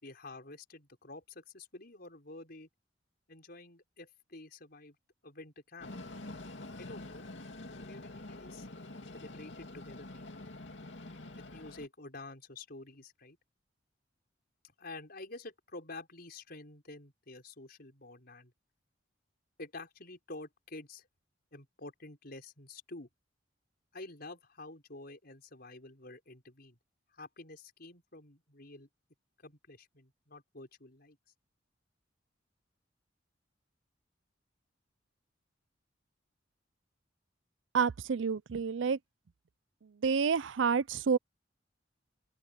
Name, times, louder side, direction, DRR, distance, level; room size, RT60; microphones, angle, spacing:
voice 1, 0.0-2.7 3.3-5.0 5.2-5.9 6.8-7.3 7.8-8.7 9.1-10.5 11.4-13.4 14.8-18.5 19.6-21.1 21.5-23.1 23.9-26.8 27.1-28.9 29.4-31.2, left 2 dB, 55° left, 5.4 m, -49 dB
Train, 5.8-11.9, left 2 dB, 70° left, 2.6 m, -46 dB
voice 2, 37.7-39.0 40.0-41.2, right 6 dB, 75° right, 0.5 m, -29 dB
open air
head